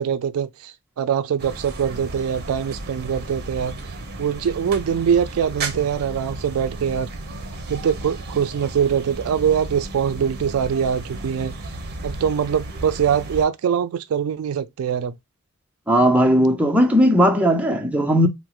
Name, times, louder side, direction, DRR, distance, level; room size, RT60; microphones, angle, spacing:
voice 1, 0.0-3.8 4.2-7.1 7.7-11.5 12.0-15.2, right 8 dB, 70° right, 0.3 m, -23 dB
sound 1, 1.4-13.5, right 2 dB, 45° right, 0.8 m, -34 dB
voice 2, 15.9-18.3, equal, 5° right, 0.6 m, -17 dB
4.3 x 2.0 x 2.3 m
head